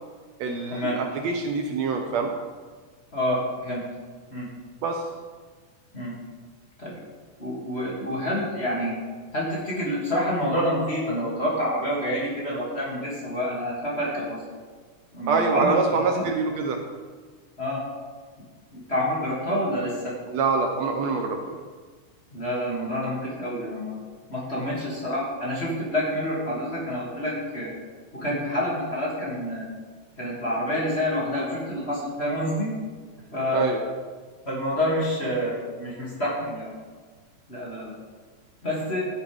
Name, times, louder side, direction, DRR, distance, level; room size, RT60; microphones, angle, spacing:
voice 1, 0.4-2.3 4.8-5.1 15.3-16.8 20.3-21.6 33.5-33.8, right 4 dB, 70° right, 3 dB, 1.9 m, -25 dB
voice 2, 3.1-3.8 4.3-4.5 5.9-6.1 6.8-7.0 7.4-8.9 9.3-14.4 15.1-15.8 16.1-16.2 17.6-17.8 18.7-20.1 22.3-23.9 24.3-27.7 28.1-29.7 30.2-32.7 33.3-33.7 34.4-36.7 37.5-37.9 38.6-39.0, equal, 20° left, -6 dB, 2.5 m, -28 dB
12.0 x 10.5 x 3.5 m, 1.5 s
omnidirectional pair, 3.4 m